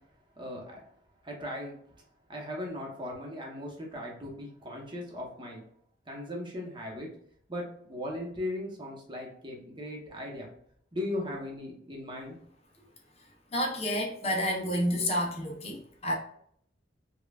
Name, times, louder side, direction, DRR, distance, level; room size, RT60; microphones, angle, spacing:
voice 1, 0.4-0.8 1.2-1.7 2.3-5.6 6.1-7.1 7.5-10.5 10.9-12.4, left 1 dB, 25° right, -1 dB, 0.9 m, -38 dB
voice 2, 13.5-16.1, equal, 35° left, 1 dB, 0.6 m, -29 dB
5.2 x 2.3 x 2.3 m, 0.66 s
head